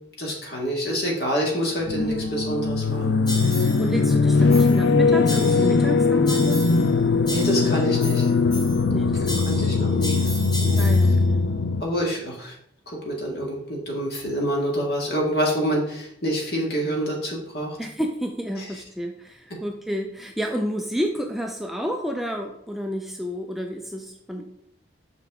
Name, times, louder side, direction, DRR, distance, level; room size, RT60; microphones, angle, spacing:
voice 1, 0.2-3.2 7.3-8.3 9.5-10.3 10.6-10.9 11.8-12.5 12.9-17.8 18.6-18.7 19.5-19.6, equal, 60° left, -2 dB, 1.8 m, -27 dB
sound 1, 1.9-11.8, left 4 dB, 75° left, 0.4 m, -20 dB
sound 2, 3.3-3.9 4.5-4.9 5.3-5.9 6.3-6.9 7.3-8.9 9.3-11.2, equal, 25° left, 1.2 m, -34 dB
voice 2, 3.6-6.7 8.9-9.5 10.8-11.5 17.8-24.4, equal, ahead, 2 dB, 0.4 m, -30 dB
5.9 x 5.7 x 3.6 m, 0.74 s
head